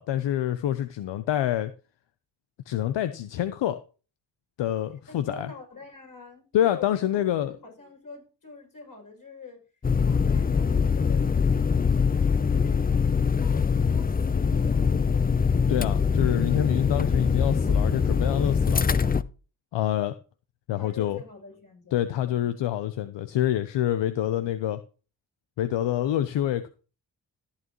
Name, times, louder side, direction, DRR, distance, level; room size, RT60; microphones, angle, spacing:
voice 1, 0.0-1.7 2.7-3.8 4.6-5.5 6.5-7.5 15.7-18.8 19.7-20.1 20.7-21.2 21.9-24.8 25.6-26.7, left 11 dB, 75° left, 0.8 m, -26 dB
voice 2, 5.1-9.6 10.0-11.9 12.3-15.1 20.8-22.5, left 3 dB, 45° left, 7.0 m, -46 dB
sound 1, 9.8-19.2, left 5 dB, 20° left, 0.5 m, -23 dB
14.0 x 8.3 x 3.0 m
supercardioid pair, 45°, 44 cm